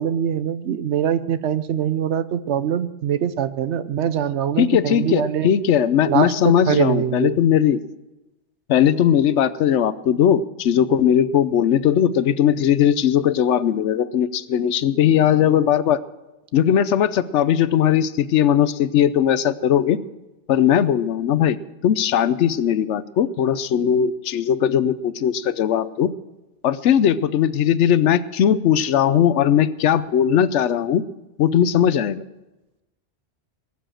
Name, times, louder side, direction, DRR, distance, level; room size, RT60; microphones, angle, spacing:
voice 1, 0.0-5.5 6.0-7.4, right 9 dB, 75° right, 14 dB, 1.0 m, -23 dB
voice 2, 4.6-7.8 8.7-16.0 16.5-20.0 20.5-21.6 21.8-26.1 26.6-31.0 31.4-32.2, left 9 dB, 85° left, 16 dB, 1.0 m, -19 dB
20.5 x 7.1 x 7.6 m, 1.0 s
omnidirectional pair, 1.2 m